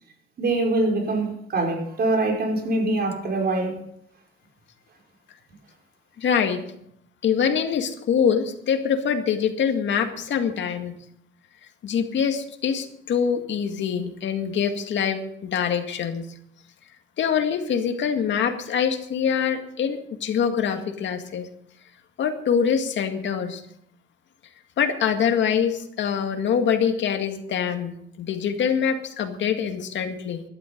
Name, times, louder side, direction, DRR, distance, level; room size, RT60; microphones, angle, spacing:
voice 1, 0.4-3.8, right 2 dB, 55° right, 1 dB, 5.0 m, -24 dB
voice 2, 6.2-6.6 7.2-10.9 11.8-16.3 17.2-21.5 22.2-23.6 24.8-30.4, left 7 dB, 70° left, 6 dB, 2.1 m, -24 dB
14.5 x 12.5 x 5.3 m, 0.71 s
cardioid pair, 90°, 20 cm